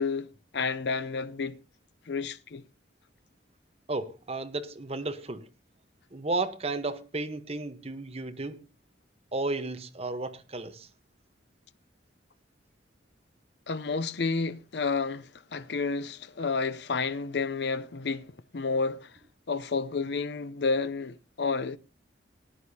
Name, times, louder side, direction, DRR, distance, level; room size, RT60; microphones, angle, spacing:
voice 1, 0.0-1.6 2.1-2.6 13.7-19.2 19.5-21.8, left 4 dB, 60° left, 0.6 m, -30 dB
voice 2, 3.9-5.5 6.1-8.6 9.3-10.9, right 2 dB, 35° right, 1.0 m, -33 dB
19.5 x 10.0 x 2.8 m
head